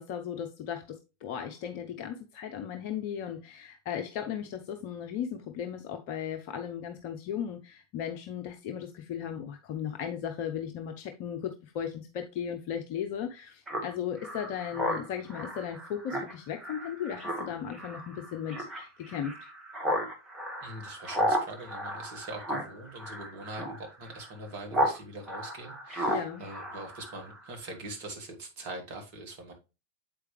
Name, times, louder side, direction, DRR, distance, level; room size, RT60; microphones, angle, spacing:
voice 1, 0.0-19.3 26.1-26.4, left 8 dB, 45° left, 0.7 m, -36 dB
Speech synthesizer, 13.7-25.0 25.3-27.5, equal, 15° right, 1.6 m, -34 dB
voice 2, 20.6-29.5, right 1 dB, 45° right, 1.9 m, -43 dB
7.7 x 4.8 x 3.2 m
figure-of-eight pair, 90°, 0 cm